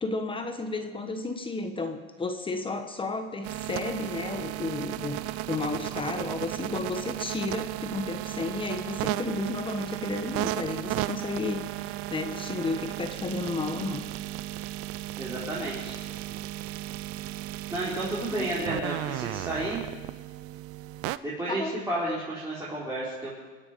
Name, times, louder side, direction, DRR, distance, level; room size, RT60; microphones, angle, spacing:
voice 1, 0.0-14.0 18.3-18.5 21.5-21.8, left 3 dB, 15° left, 7 dB, 1.2 m, -33 dB
sound 1, 3.4-21.2, right 16 dB, 45° right, 0.5 m, -35 dB
voice 2, 15.2-16.4 17.7-19.8 21.2-23.3, right 1 dB, 10° right, -8 dB, 4.4 m, -32 dB
25.5 x 9.8 x 5.3 m, 1.4 s
supercardioid pair, 125°, 31 cm